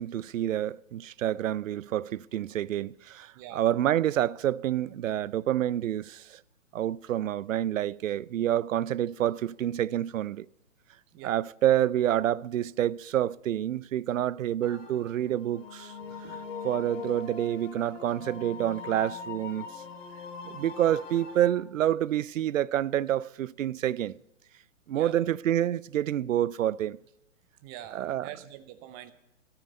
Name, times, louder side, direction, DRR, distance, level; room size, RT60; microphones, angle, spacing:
voice 1, 0.0-6.4 6.7-10.5 11.2-15.9 16.6-19.8 20.4-24.2 24.9-27.0 27.9-28.3, right 11 dB, 80° right, 0.5 m, -28 dB
sound 1, 14.6-21.5, left 5 dB, 75° left, 2.7 m, -42 dB
voice 2, 16.0-16.5 24.9-25.2 27.6-29.1, right 12 dB, 20° right, 0.8 m, -45 dB
14.5 x 13.0 x 5.3 m
hypercardioid pair, 140°, 38 cm